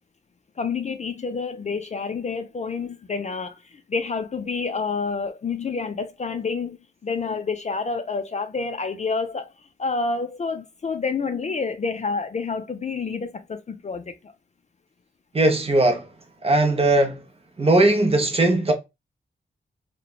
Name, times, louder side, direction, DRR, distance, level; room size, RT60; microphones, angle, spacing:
voice 1, 0.6-6.8 7.0-9.5 9.8-14.3, left 4 dB, 35° left, 0.4 m, -28 dB
voice 2, 15.3-16.1 16.4-17.2 17.6-18.7, right 2 dB, 30° right, 0.6 m, -19 dB
2.9 x 2.1 x 2.2 m
wide cardioid pair, 105°, 19 cm